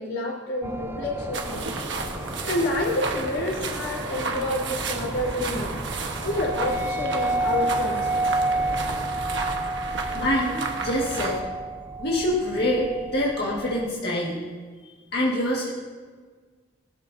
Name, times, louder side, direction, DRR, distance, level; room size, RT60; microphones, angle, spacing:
voice 1, 0.0-1.7 2.4-5.8 6.2-8.1, left 1 dB, 90° left, -4 dB, 4.2 m, -28 dB
sound 1, 0.6-13.9, right 2 dB, 10° right, 0.4 m, -31 dB
sound 2, 0.8-9.1, equal, 5° left, 4.4 m, -39 dB
sound 3, 1.3-11.4, right 3 dB, 65° right, 1.3 m, -33 dB
voice 2, 10.1-11.4 12.0-14.5 15.1-15.7, left 1 dB, 55° left, -5 dB, 1.9 m, -25 dB
20.0 x 12.5 x 2.8 m, 1.5 s
head